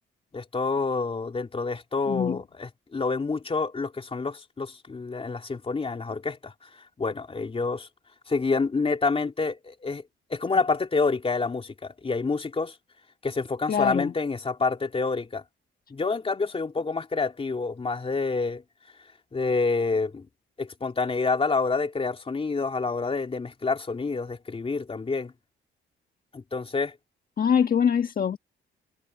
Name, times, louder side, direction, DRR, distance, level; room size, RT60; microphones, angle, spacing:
voice 1, 0.3-6.7 7.0-7.9 8.3-10.0 10.3-12.7 13.2-15.4 15.9-18.6 19.3-20.3 20.6-25.3 26.3-27.0, left 4 dB, 30° left, 3.1 m, -28 dB
voice 2, 2.1-2.4 13.7-14.1 27.4-28.4, left 7 dB, 45° left, 1.5 m, -23 dB
cardioid pair, 90°, 20 cm